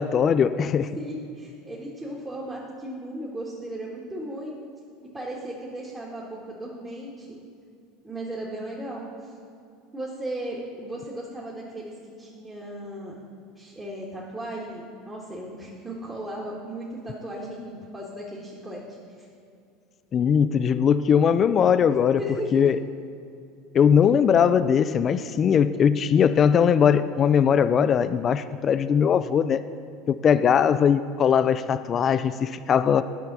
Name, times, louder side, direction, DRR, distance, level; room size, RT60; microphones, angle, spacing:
voice 1, 0.0-1.0 20.1-22.2 22.5-22.8 23.7-29.6 30.1-33.0, left 7 dB, 35° left, 12 dB, 0.3 m, -20 dB
voice 2, 0.9-4.6 5.1-7.4 8.0-9.3 9.9-13.1 13.5-19.3 22.2-22.8, right 1 dB, 15° right, -4 dB, 1.6 m, -36 dB
9.9 x 5.7 x 6.0 m, 2.5 s
hypercardioid pair, 85°, 0 cm